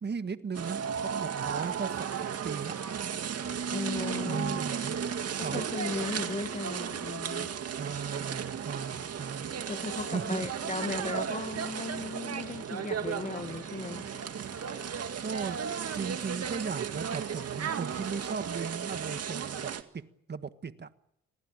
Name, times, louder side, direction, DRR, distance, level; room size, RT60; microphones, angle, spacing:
voice 1, 0.0-2.8 4.3-5.6 7.7-9.5 10.1-10.5 15.2-15.6 15.9-20.0 20.3-20.9, right 5 dB, 35° right, 1.6 m, -37 dB
sound 1, 0.5-19.8, right 7 dB, 55° right, 2.1 m, -35 dB
voice 2, 3.7-4.6 5.4-7.6 9.7-14.1, left 3 dB, 25° left, 1.8 m, -36 dB
sound 2, 13.6-18.7, left 10 dB, 85° left, 3.6 m, -58 dB
26.5 x 19.0 x 8.9 m
cardioid pair, 90°, 30 cm